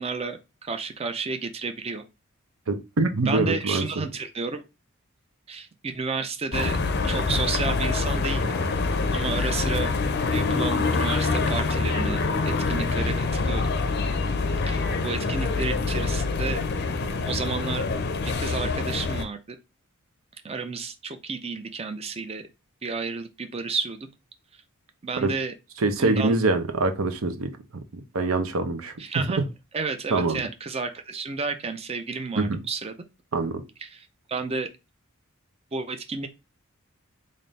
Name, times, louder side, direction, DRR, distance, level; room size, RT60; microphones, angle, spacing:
voice 1, 0.0-2.0 3.3-4.6 5.5-6.8 7.0-8.5 9.1-9.9 10.3-12.2 12.5-13.7 14.7-16.6 17.2-17.9 18.4-19.6 20.4-22.4 22.8-24.0 25.0-25.5 26.0-26.4 29.0-29.4 29.7-32.9 33.8-34.7 35.7-36.3, right 4 dB, 30° right, 0.5 m, -31 dB
voice 2, 2.7-3.8 25.2-25.3 25.8-27.5 28.1-29.2 30.1-30.4 32.4-32.5 33.3-33.6, right 3 dB, 75° right, 0.7 m, -24 dB
sound 1, 6.5-19.2, left 3 dB, 50° left, 0.5 m, -25 dB
3.5 x 2.5 x 4.0 m
head